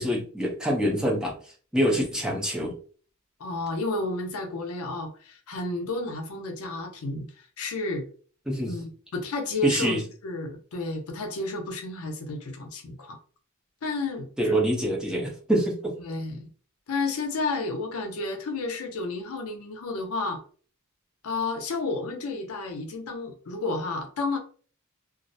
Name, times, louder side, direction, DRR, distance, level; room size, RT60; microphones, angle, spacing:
voice 1, 0.0-1.4 1.7-2.8 8.5-8.7 9.6-10.0 14.4-15.9, equal, 5° right, -2 dB, 0.5 m, -25 dB
voice 2, 3.4-7.3 7.6-8.1 8.7-13.2 13.8-14.3 16.0-16.5 16.9-20.4 21.2-24.4, left 2 dB, 75° left, 4 dB, 0.5 m, -31 dB
2.4 x 2.0 x 2.6 m, 0.41 s
head